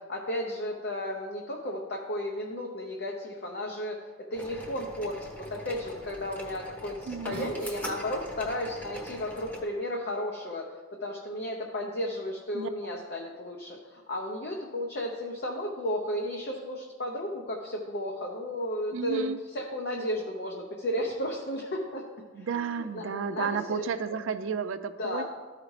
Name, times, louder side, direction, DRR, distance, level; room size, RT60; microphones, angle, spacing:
voice 1, 0.0-10.7 11.0-22.0 22.4-23.8 25.0-25.2, left 1 dB, 50° left, 0 dB, 0.7 m, -34 dB
sound 1, 4.3-9.6, equal, 10° left, 0.9 m, -41 dB
voice 2, 7.1-7.5 12.5-12.7 18.9-19.4 22.3-25.2, right 6 dB, 70° right, 11 dB, 0.4 m, -32 dB
13.0 x 4.9 x 3.2 m, 1.4 s
head